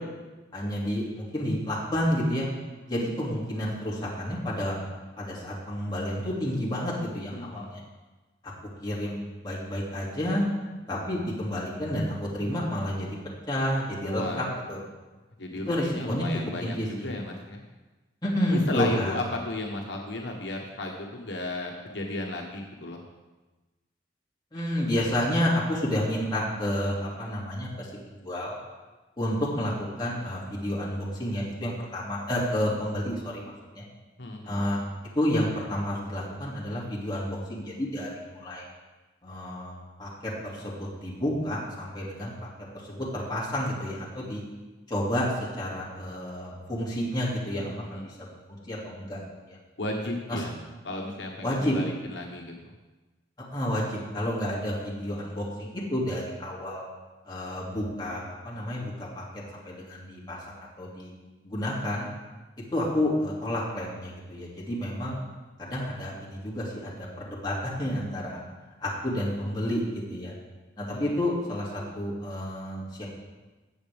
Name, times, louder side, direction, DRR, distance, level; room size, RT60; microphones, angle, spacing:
voice 1, 0.5-2.5 2.9-4.8 5.2-7.8 8.4-8.5 8.8-10.5 10.9-13.2 13.5-14.8 15.7-16.3 16.6-17.1 18.2-19.1 24.5-27.9 28.2-28.6 29.2-33.8 34.4-34.8 35.1-38.6 39.2-42.3 42.7-44.4 44.9-47.7 48.0-48.1 48.7-49.2 49.5-49.6 50.3-50.4 51.4-51.8 53.5-56.8 57.3-59.2 59.7-61.1 61.4-62.1 62.7-65.2 65.6-68.4 68.8-70.3 70.8-73.1, left 1 dB, 25° left, -6 dB, 2.5 m, -30 dB
voice 2, 7.3-7.7 14.0-14.4 15.4-17.6 18.5-23.0 32.5-32.6 34.2-34.6 47.6-48.0 49.8-50.5 50.8-52.7 70.9-71.1, left 2 dB, 75° left, 1 dB, 1.1 m, -34 dB
16.5 x 7.0 x 3.5 m, 1.2 s
head